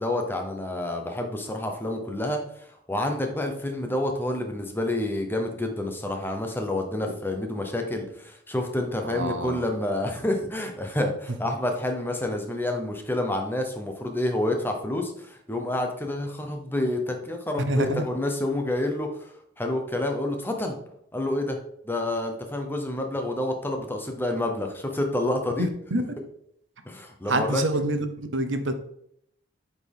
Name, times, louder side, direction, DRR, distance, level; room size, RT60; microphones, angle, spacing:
voice 1, 0.0-20.8 21.1-21.6 21.8-25.7 26.9-27.6, left 1 dB, 10° left, 3 dB, 0.9 m, -28 dB
voice 2, 9.0-9.7 17.7-18.0 25.6-26.0 27.3-28.7, right 1 dB, 70° right, 8 dB, 0.8 m, -26 dB
7.8 x 4.5 x 3.5 m, 0.71 s
head